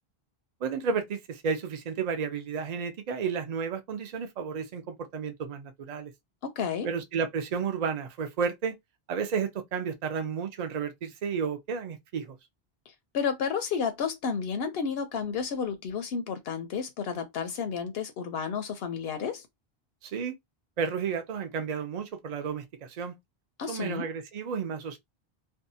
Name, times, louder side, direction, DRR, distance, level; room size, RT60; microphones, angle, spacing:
voice 1, 0.6-6.1 6.8-8.7 9.1-12.4 20.0-20.3 20.8-23.2 23.7-25.0, right 6 dB, 50° right, 0.5 m, -32 dB
voice 2, 6.4-6.9 12.9-19.5 23.6-24.1, left 6 dB, 75° left, 0.8 m, -31 dB
2.6 x 2.2 x 2.6 m
omnidirectional pair, 1.0 m